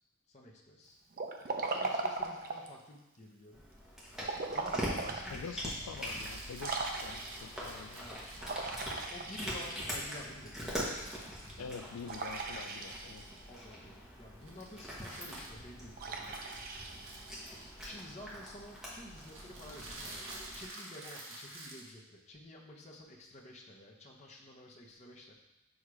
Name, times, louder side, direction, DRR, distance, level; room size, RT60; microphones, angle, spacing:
voice 1, 0.3-1.0 1.7-3.7 4.5-5.6 8.0-8.4 8.8-10.8 13.5-16.4 17.8-25.3, left 1 dB, 30° left, -2 dB, 0.9 m, -51 dB
Liquid, 1.1-2.8 4.2-5.3 5.8-5.9 6.6-7.6 8.4-10.0 12.1-13.4 16.0-17.6, right 3 dB, 40° right, 0.5 m, -38 dB
Cat, 3.5-20.6, equal, ahead, 1.2 m, -43 dB
voice 2, 5.3-8.0 11.6-13.3, left 6 dB, 85° left, 8 dB, 0.3 m, -46 dB
sound 1, 5.6-9.3 10.7-11.9 12.2-13.4 14.4-15.7 16.4-18.2 19.1-21.9, right 2 dB, 60° right, 1.2 m, -49 dB
6.4 x 3.6 x 4.8 m, 0.94 s
head